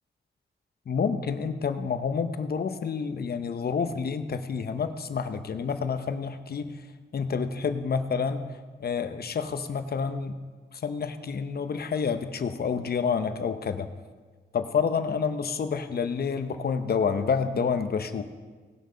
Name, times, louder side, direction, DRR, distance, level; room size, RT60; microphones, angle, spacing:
voice 1, 0.9-6.7 7.1-8.4 8.8-10.4 10.7-13.9 14.5-18.2, left 6 dB, 60° left, 9 dB, 0.9 m, -28 dB
18.5 x 6.6 x 5.2 m, 1.4 s
cardioid pair, 75°, 18 cm